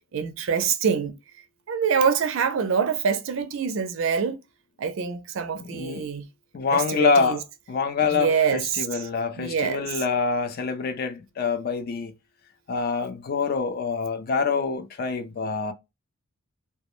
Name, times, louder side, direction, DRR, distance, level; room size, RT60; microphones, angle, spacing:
voice 1, 0.1-1.2 1.7-4.4 4.8-6.2 6.7-7.4 8.0-9.0 9.4-9.9, right 6 dB, 60° right, 0.4 m, -25 dB
voice 2, 5.5-6.1 6.5-7.4 7.7-12.1 12.7-15.7, left 5 dB, 45° left, 0.3 m, -26 dB
2.2 x 2.0 x 2.9 m
head